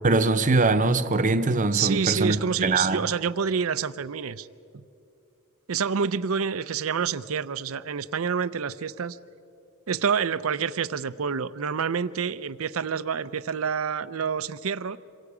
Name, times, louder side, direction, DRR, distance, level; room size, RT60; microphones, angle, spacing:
voice 1, 0.0-3.0, right 3 dB, 40° right, 9 dB, 0.8 m, -22 dB
voice 2, 1.7-4.5 5.7-9.2 9.9-15.0, right 6 dB, 75° right, 15 dB, 0.6 m, -27 dB
27.0 x 23.0 x 5.0 m, 2.6 s
head